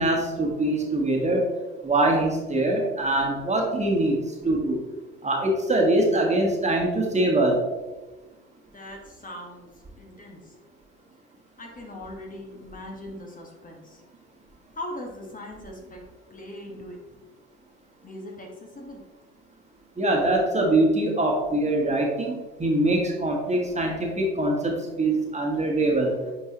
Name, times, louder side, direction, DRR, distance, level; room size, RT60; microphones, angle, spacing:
voice 1, 0.0-1.5 1.8-4.2 4.4-4.8 5.2-7.6 20.0-26.2, right 1 dB, 20° right, 0 dB, 1.7 m, -23 dB
voice 2, 8.7-9.7 10.0-10.6 11.6-14.0 14.7-16.0 16.3-17.0 18.0-19.0, left 1 dB, 25° left, 0 dB, 1.6 m, -40 dB
9.4 x 4.5 x 3.0 m, 1.2 s
hypercardioid pair, 60°, 32 cm